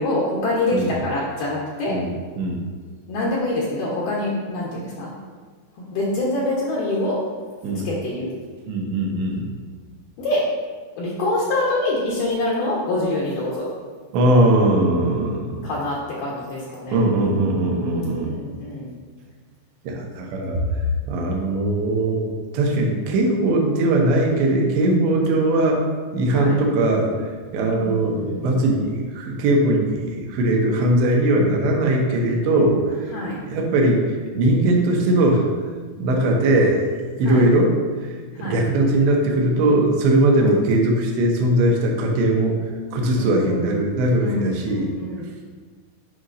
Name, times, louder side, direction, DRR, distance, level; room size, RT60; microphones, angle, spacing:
voice 1, 0.0-2.0 3.1-5.1 5.8-7.2 7.8-8.4 10.2-10.4 11.0-13.7 15.6-17.1 17.9-18.9 26.3-26.6 27.7-28.6 33.1-33.4 37.3-37.4 38.3-38.6 40.4-40.6 43.1-43.9 44.2-45.4, left 1 dB, 85° left, -6 dB, 1.9 m, -25 dB
voice 2, 8.7-9.5 14.1-15.6 16.9-18.3 19.8-20.6 21.1-25.8 26.1-27.1 27.5-33.1 33.5-34.1 34.4-35.5 36.0-36.9 37.2-37.7 38.0-42.6 42.9-44.9, right 1 dB, 75° right, 0 dB, 2.9 m, -20 dB
11.0 x 5.0 x 2.6 m, 1.5 s
omnidirectional pair, 5.5 m